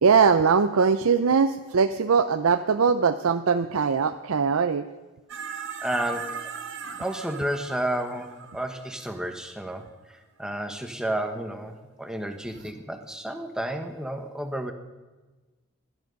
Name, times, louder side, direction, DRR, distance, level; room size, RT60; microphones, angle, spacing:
voice 1, 0.0-4.9, right 5 dB, 85° right, 10 dB, 0.6 m, -21 dB
sound 1, 5.3-9.7 12.5-12.7, right 6 dB, 55° right, 1.2 m, -39 dB
voice 2, 5.8-6.4 7.0-14.7, right 1 dB, 5° right, 6 dB, 1.1 m, -31 dB
18.0 x 12.0 x 5.3 m, 1.2 s
head